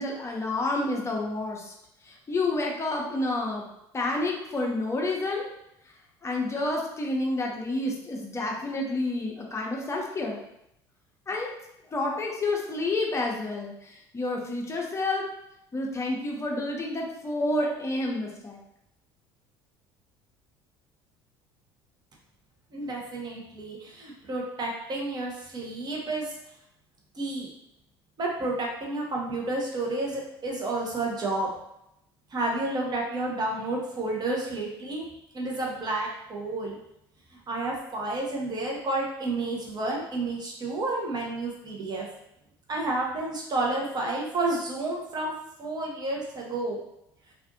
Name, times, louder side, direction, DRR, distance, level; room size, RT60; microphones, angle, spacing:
voice 1, 0.0-1.7 2.0-3.6 3.9-5.5 6.2-10.4 11.3-11.5 11.9-15.2 15.7-18.6, left 2 dB, 25° left, -1 dB, 0.7 m, -29 dB
voice 2, 22.7-26.3 27.1-27.5 28.2-31.5 32.3-35.1 35.3-36.8 37.5-42.1 42.7-45.3 45.6-46.8, right 2 dB, 35° right, -2 dB, 0.9 m, -30 dB
2.5 x 2.4 x 2.6 m, 0.79 s
hypercardioid pair, 70°, 12 cm